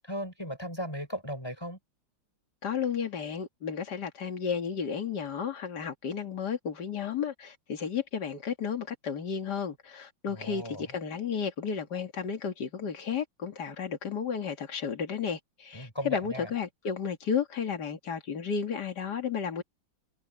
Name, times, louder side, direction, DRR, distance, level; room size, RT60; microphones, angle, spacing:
voice 1, 0.0-1.8 10.3-10.9 15.7-16.5, equal, 10° left, 6.5 m, -37 dB
voice 2, 2.6-19.6, left 7 dB, 60° left, 2.6 m, -33 dB
omnidirectional pair, 2.1 m